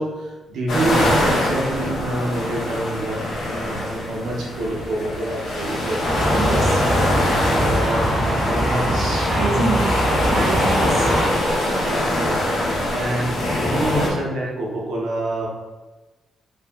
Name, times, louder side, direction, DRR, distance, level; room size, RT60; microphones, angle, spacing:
voice 1, 0.0-6.1 6.6-7.1 7.5-9.7 11.9-12.4 12.9-15.5, right 1 dB, 80° right, -3 dB, 0.6 m, -27 dB
sound 1, 0.7-14.1, left 1 dB, 70° left, 0.6 m, -24 dB
sound 2, 6.0-11.3, equal, 35° left, 0.9 m, -22 dB
voice 2, 6.4-6.9 7.6-7.7 9.2-11.1 11.6-12.4, right 3 dB, 35° right, -2 dB, 0.3 m, -27 dB
2.7 x 2.3 x 2.2 m, 1.2 s
cardioid pair, 115°, 0 cm